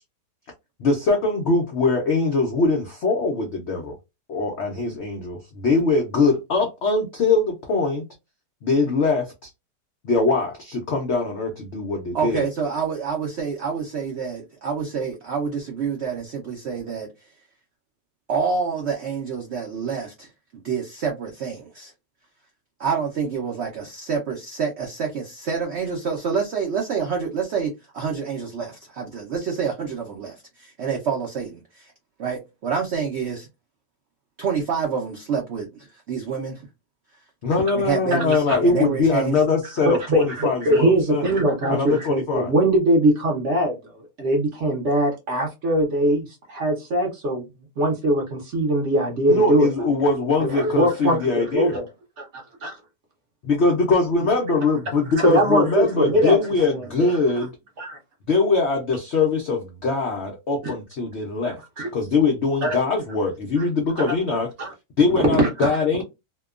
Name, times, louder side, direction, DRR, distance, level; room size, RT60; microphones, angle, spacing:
voice 1, 0.8-4.0 4.3-8.0 8.6-9.5 10.0-12.5 37.4-41.3 41.7-42.5 49.3-51.8 53.4-57.5 58.3-61.6 61.9-64.5 65.0-66.0, left 3 dB, 85° left, 0.6 m, -22 dB
voice 2, 12.1-17.1 18.3-21.9 22.8-31.9 32.2-33.5 34.4-36.6 37.7-39.4, right 6 dB, 85° right, 0.5 m, -27 dB
voice 3, 38.1-38.6 39.8-43.9 44.2-47.4 47.8-49.7 50.4-51.9 52.2-52.8 55.2-56.4 56.7-57.2 57.8-58.0 60.6-60.7 61.4-61.9 62.6-62.8 63.6-63.7 64.0-64.1 64.6-64.7 65.1-66.0, right 1 dB, 60° right, 0.8 m, -22 dB
2.8 x 2.2 x 2.3 m
omnidirectional pair, 1.9 m